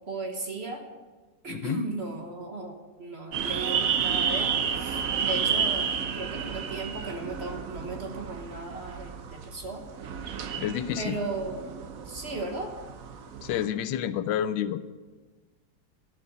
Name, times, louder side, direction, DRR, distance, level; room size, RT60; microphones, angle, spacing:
voice 1, 0.1-0.8 1.4-9.8 11.0-11.7 12.1-12.7, right 3 dB, 40° right, 3 dB, 1.2 m, -36 dB
voice 2, 1.5-1.9 10.6-11.2 13.4-14.9, left 10 dB, 80° left, 13 dB, 1.3 m, -29 dB
sound 1, 3.3-13.7, right 7 dB, 60° right, 1.0 m, -31 dB
12.5 x 7.4 x 6.6 m, 1.3 s
omnidirectional pair, 2.0 m